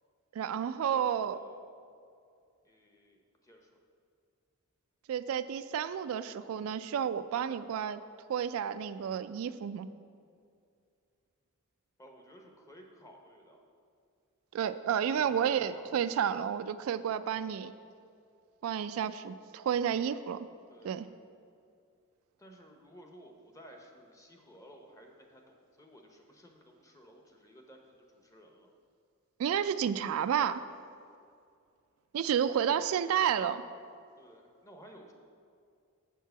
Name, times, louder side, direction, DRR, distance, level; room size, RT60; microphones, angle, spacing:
voice 1, 0.3-1.4 5.1-8.0 8.3-9.9 14.5-17.7 18.6-20.5 20.8-21.1 29.4-30.6 32.1-33.6, right 8 dB, 75° right, 13 dB, 0.3 m, -31 dB
voice 2, 0.8-1.6 2.6-3.7 12.0-13.6 15.0-16.0 20.7-21.1 22.4-28.7 32.7-32.9 34.2-35.1, equal, 15° left, 2 dB, 0.9 m, -55 dB
8.3 x 4.6 x 6.8 m, 2.3 s
head